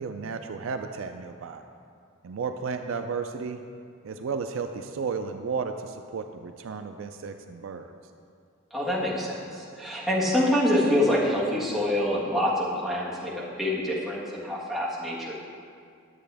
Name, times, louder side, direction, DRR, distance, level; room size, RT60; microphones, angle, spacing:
voice 1, 0.0-1.6 2.2-3.6 4.0-7.9, right 5 dB, 65° right, 7 dB, 0.4 m, -33 dB
voice 2, 8.7-15.4, left 1 dB, ahead, -8 dB, 1.6 m, -26 dB
11.0 x 7.6 x 3.4 m, 2.3 s
head